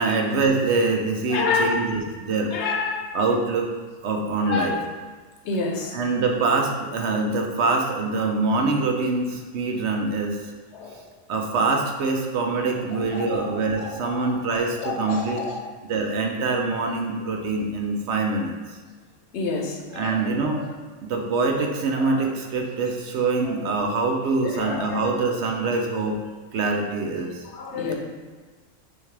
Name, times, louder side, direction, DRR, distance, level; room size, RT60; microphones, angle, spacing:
voice 1, 0.0-2.6 3.1-3.7 4.0-4.8 5.9-10.4 11.3-15.4 15.9-18.5 19.9-20.6 21.0-26.2 26.5-27.4, right 3 dB, 65° right, 2 dB, 0.8 m, -24 dB
voice 2, 1.3-1.9 2.5-3.1 4.5-4.9 5.4-6.0 10.7-11.0 13.1-14.3 14.8-15.7 19.3-20.7 21.9-22.2 23.4-23.6 24.4-25.1 27.5-27.9, left 4 dB, 60° left, 0 dB, 0.9 m, -29 dB
6.2 x 2.4 x 3.2 m, 1.4 s
omnidirectional pair, 1.4 m